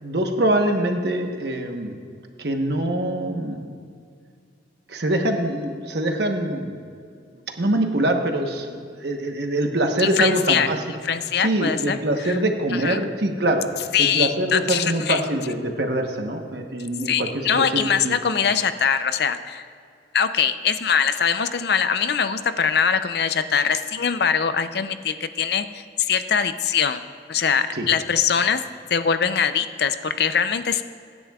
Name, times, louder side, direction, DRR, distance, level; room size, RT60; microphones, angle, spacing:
voice 1, 0.0-2.0 2.4-3.6 4.9-6.8 7.6-10.8 11.4-17.3 17.6-18.1 27.7-27.9, right 1 dB, 60° right, 4 dB, 1.1 m, -24 dB
voice 2, 10.0-10.7 11.0-12.0 12.2-12.4 12.7-13.0 13.9-15.2 17.1-19.6 20.1-27.0 27.3-28.6 28.9-30.8, left 7 dB, 60° left, 10 dB, 0.5 m, -22 dB
23.5 x 10.0 x 2.4 m, 2.3 s
head